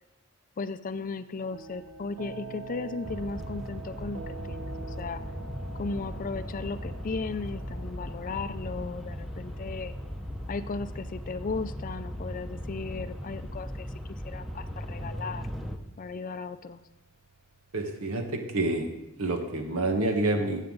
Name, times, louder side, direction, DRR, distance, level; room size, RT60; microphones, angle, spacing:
voice 1, 0.6-4.6 4.9-5.2 5.7-9.9 10.5-13.9 14.2-15.4 16.0-16.8, left 4 dB, 40° left, 12 dB, 0.4 m, -36 dB
sound 1, 1.5-19.5, right 4 dB, 70° right, 1.1 m, -48 dB
sound 2, 3.0-15.8, equal, ahead, 0.7 m, -38 dB
voice 2, 17.7-18.9 19.1-20.7, right 2 dB, 85° right, 4 dB, 1.6 m, -28 dB
14.5 x 8.3 x 3.9 m, 0.97 s
head